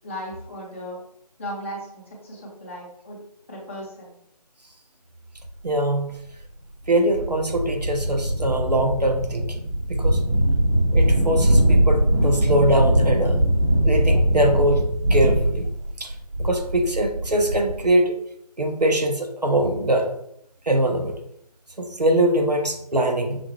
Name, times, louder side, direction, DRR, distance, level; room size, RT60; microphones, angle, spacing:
voice 1, 0.0-1.0 1.4-3.2 3.5-4.1, equal, 20° left, -4 dB, 0.9 m, -36 dB
voice 2, 5.6-6.1 6.9-10.2 10.9-13.4 13.8-14.8 15.1-15.7 16.0-16.1 16.4-18.1 18.6-20.1 20.7-21.2 21.8-23.4, right 1 dB, 90° right, 3 dB, 1.1 m, -22 dB
sound 1, 5.7-5.8 6.4-6.5 6.9-17.9, right 1 dB, 50° right, 1.2 m, -21 dB
5.7 x 2.4 x 3.1 m, 0.74 s
figure-of-eight pair, 160°, 20 cm